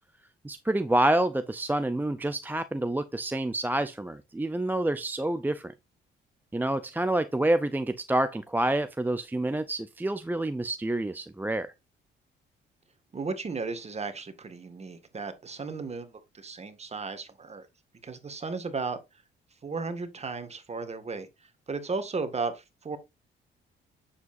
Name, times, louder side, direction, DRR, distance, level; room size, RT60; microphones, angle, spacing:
voice 1, 0.4-5.7 6.5-11.7, right 1 dB, 10° right, 0.5 m, -28 dB
voice 2, 13.1-17.7 18.0-19.0 19.6-23.0, right 4 dB, 35° right, 1.9 m, -35 dB
8.1 x 7.3 x 2.6 m
cardioid pair, 90°, 20 cm